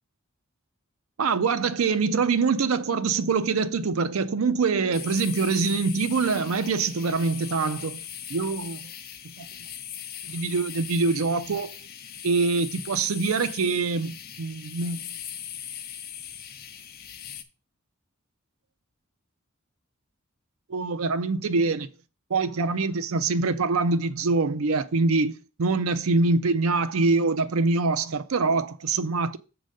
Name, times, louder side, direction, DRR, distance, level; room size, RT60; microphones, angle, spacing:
voice 1, 1.2-8.0 8.3-8.9 9.2-9.5 10.3-11.7 12.2-15.0 20.7-21.9 22.3-25.3 25.6-29.4, right 4 dB, 85° right, 0.5 m, -24 dB
sound 1, 4.9-17.4, left 9 dB, 45° left, 0.8 m, -40 dB
7.4 x 3.9 x 6.4 m
head